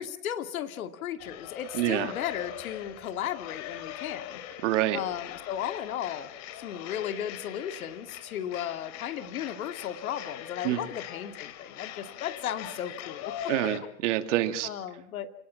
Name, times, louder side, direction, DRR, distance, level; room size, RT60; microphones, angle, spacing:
voice 1, 0.0-4.6 4.9-6.3 6.6-13.7 14.6-15.3, left 10 dB, 70° left, 8 dB, 2.4 m, -35 dB
sound 1, 1.2-13.8, left 11 dB, 35° left, 2.6 m, -41 dB
voice 2, 1.7-2.1 4.6-5.0 10.6-10.8 13.5-14.7, right 14 dB, 55° right, 8 dB, 2.6 m, -26 dB
29.0 x 18.5 x 7.3 m, 0.66 s
hypercardioid pair, 125°, 43 cm